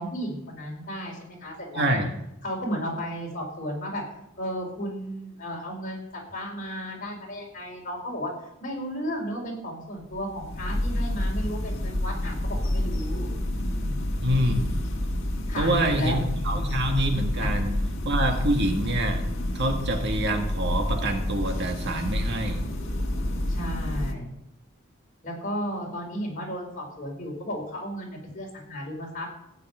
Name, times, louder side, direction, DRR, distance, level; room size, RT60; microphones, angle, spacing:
voice 1, 0.0-2.0 2.4-4.0 4.4-8.3 8.6-13.3 13.6-14.0 15.5-16.2 16.5-16.7 17.4-17.5 23.5-24.3 25.2-29.3, equal, 40° left, -1 dB, 4.7 m, -34 dB
voice 2, 1.7-2.1 14.2-14.8 15.6-17.8 18.0-19.2 19.5-22.6, right 1 dB, 60° right, 4 dB, 1.8 m, -26 dB
sound 1, 10.0-24.1, left 1 dB, 65° left, 1.8 m, -29 dB
16.0 x 5.8 x 9.0 m, 0.81 s
head